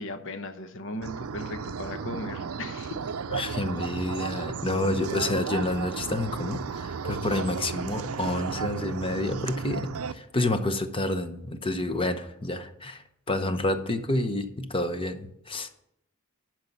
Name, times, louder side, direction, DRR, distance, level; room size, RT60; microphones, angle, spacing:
voice 1, 0.0-3.0, left 1 dB, 60° left, 9 dB, 1.0 m, -37 dB
sound 1, 1.0-10.1, right 6 dB, 80° right, 0.5 m, -34 dB
voice 2, 3.3-15.7, left 1 dB, 25° left, 9 dB, 0.9 m, -29 dB
11.0 x 4.8 x 8.1 m, 0.77 s
head